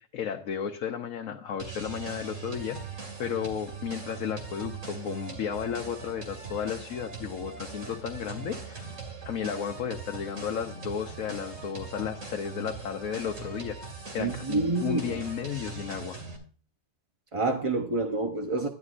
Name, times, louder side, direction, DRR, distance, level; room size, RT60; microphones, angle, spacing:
voice 1, 0.0-2.8 3.2-9.0 9.2-13.8 14.1-16.2, left 8 dB, 65° left, 1.2 m, -33 dB
sound 1, 1.6-16.4, right 4 dB, 55° right, 2.6 m, -41 dB
voice 2, 14.2-15.0 17.3-18.7, right 3 dB, 35° right, 0.5 m, -27 dB
11.0 x 10.5 x 2.5 m
omnidirectional pair, 1.6 m